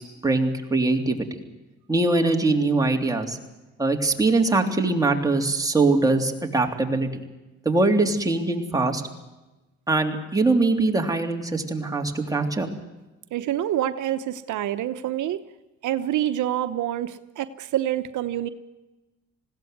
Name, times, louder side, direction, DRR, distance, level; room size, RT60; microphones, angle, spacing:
voice 1, 0.2-1.3 1.9-3.4 3.8-7.2 7.6-9.0 9.9-12.7, right 3 dB, 10° right, 2 dB, 3.4 m, -22 dB
voice 2, 13.3-15.4 15.8-18.5, right 12 dB, 75° right, 10 dB, 1.0 m, -27 dB
20.5 x 16.5 x 9.4 m, 1.1 s
cardioid pair, 90°, 30 cm